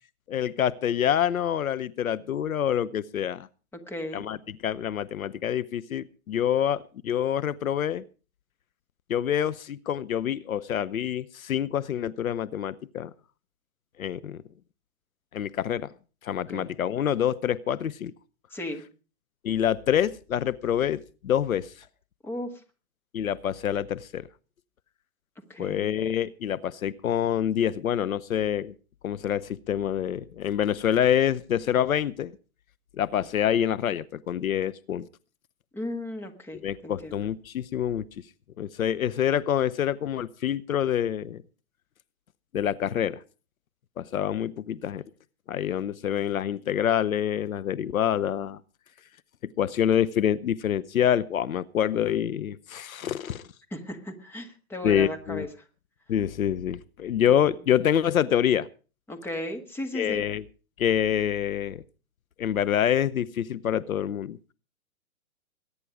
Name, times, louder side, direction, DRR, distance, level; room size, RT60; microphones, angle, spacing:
voice 1, 0.3-3.5 4.1-8.0 9.1-13.1 14.0-14.4 15.3-15.9 16.2-18.1 19.4-21.7 23.1-24.3 25.6-28.7 29.0-32.3 33.0-35.1 36.5-38.0 38.6-41.4 42.5-43.2 44.0-45.0 45.5-48.6 49.6-53.5 54.8-55.5 56.1-58.7 59.9-60.4 60.8-61.8 62.4-64.4, left 10 dB, 70° left, 17 dB, 0.9 m, -26 dB
voice 2, 3.9-4.2 16.5-16.7 18.5-18.8 22.2-22.5 25.5-25.9 35.7-37.2 53.7-55.5 59.1-60.2, left 1 dB, 5° left, 4 dB, 1.5 m, -35 dB
21.5 x 10.0 x 4.9 m, 0.36 s
hypercardioid pair, 140°, 43 cm